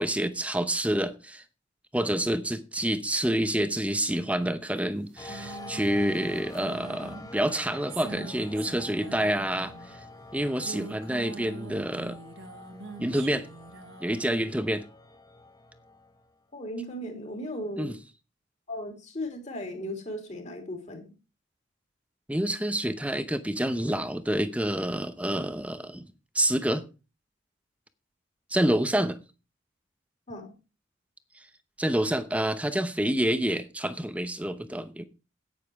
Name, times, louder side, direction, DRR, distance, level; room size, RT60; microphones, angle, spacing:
voice 1, 0.0-1.4 1.9-10.0 10.3-12.2 13.0-13.5 14.0-14.9 17.8-17.9 22.3-26.1 26.3-26.8 28.5-29.2 31.8-35.1, right 1 dB, 5° right, 0.7 m, -28 dB
sound 1, 4.9-10.0 10.5-14.2, right 4 dB, 70° right, 1.5 m, -44 dB
sound 2, 5.2-16.3, left 2 dB, 20° left, 1.0 m, -46 dB
voice 2, 16.5-18.0 18.7-21.0 30.3-30.5, left 1 dB, 35° left, 3.1 m, -36 dB
9.9 x 9.2 x 4.6 m
head